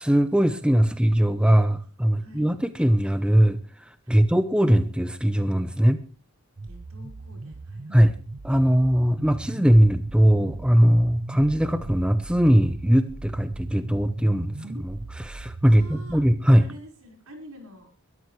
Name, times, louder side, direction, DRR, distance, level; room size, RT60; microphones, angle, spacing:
voice 1, 0.0-3.6 4.1-6.0 7.9-8.1 8.4-16.6, equal, 5° right, 10 dB, 0.8 m, -20 dB
voice 2, 2.2-2.5 4.0-4.3 6.6-8.3 15.6-16.2 16.6-18.0, equal, 75° right, 2 dB, 5.3 m, -47 dB
sound 1, 6.6-16.5, right 2 dB, 40° right, 0.6 m, -38 dB
22.0 x 13.0 x 3.3 m, 0.35 s
head